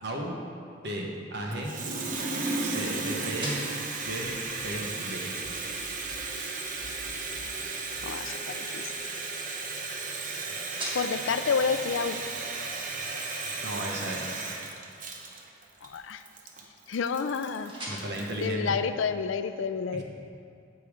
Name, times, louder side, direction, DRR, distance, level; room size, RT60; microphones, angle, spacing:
voice 1, 0.0-0.3 0.8-1.8 2.6-3.6 4.0-4.4 4.6-5.3 13.6-14.4 17.9-18.8 19.9-20.0, right 1 dB, 60° right, 0 dB, 1.2 m, -34 dB
sound 1, 0.7-19.5, right 1 dB, 25° right, 1.4 m, -48 dB
Water tap faucet, 1.5-18.4, right 3 dB, 45° right, 0.8 m, -35 dB
sound 2, 4.2-8.0, equal, 30° left, 2.4 m, -53 dB
voice 2, 8.0-8.9 10.9-12.2 15.8-16.2 16.9-17.7 18.4-20.0, left 5 dB, 75° left, 11 dB, 0.4 m, -29 dB
8.6 x 7.1 x 5.0 m, 2.4 s
head